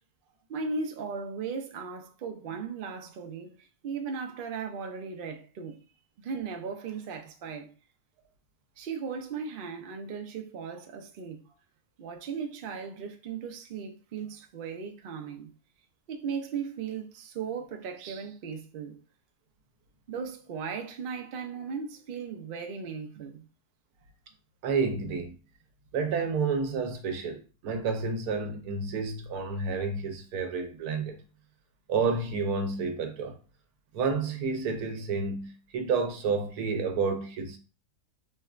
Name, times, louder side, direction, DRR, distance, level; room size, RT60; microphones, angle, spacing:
voice 1, 0.5-5.8 6.2-7.7 8.8-11.5 12.0-15.5 16.1-19.0 20.1-23.4, right 5 dB, 70° right, 0.5 m, -37 dB
voice 2, 24.6-25.3 25.9-31.2 31.9-33.4 33.9-37.6, right 4 dB, 90° right, 1.1 m, -30 dB
3.6 x 2.1 x 2.4 m
omnidirectional pair, 1.5 m